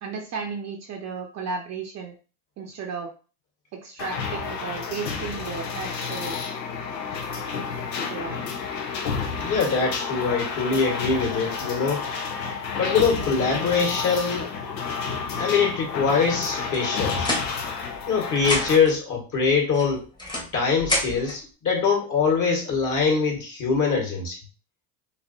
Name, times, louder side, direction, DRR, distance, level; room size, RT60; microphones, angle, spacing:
voice 1, 0.0-2.1 2.6-3.1 3.7-6.4 8.1-8.5, right 5 dB, 35° right, 2 dB, 0.7 m, -34 dB
sound 1, 4.0-18.8, left 5 dB, 80° left, 0.8 m, -30 dB
voice 2, 9.4-12.0 12.8-14.5 15.4-17.4 18.1-20.1 20.5-24.4, left 5 dB, 35° left, -1 dB, 1.6 m, -23 dB
sound 2, 16.7-18.1 18.4-19.0 19.7-21.4, left 1 dB, 10° left, 1.1 m, -30 dB
3.0 x 2.7 x 2.7 m, 0.35 s
hypercardioid pair, 80°, 50 cm